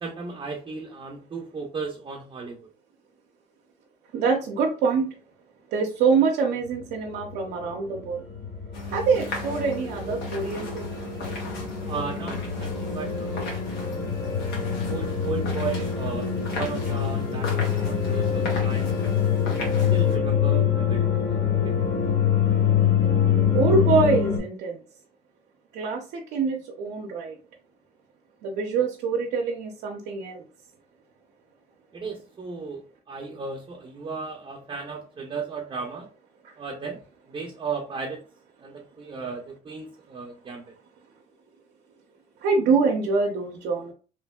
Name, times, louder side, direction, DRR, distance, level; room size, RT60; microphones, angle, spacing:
voice 1, 0.0-2.7 11.9-13.4 14.9-19.0 19.9-21.9 31.9-36.1 36.6-37.0 37.3-38.2 38.6-40.7, right 5 dB, 30° right, 0 dB, 0.5 m, -35 dB
voice 2, 4.1-5.1 5.7-8.2 8.9-10.9 23.5-24.8 25.7-27.4 28.4-30.4 42.4-43.9, right 4 dB, 80° right, 0 dB, 0.6 m, -24 dB
sound 1, 6.7-24.4, left 8 dB, 15° left, 0.8 m, -25 dB
sound 2, 8.7-20.2, left 2 dB, 75° left, 1.1 m, -38 dB
3.0 x 2.5 x 2.2 m, 0.35 s
cardioid pair, 110°, 17 cm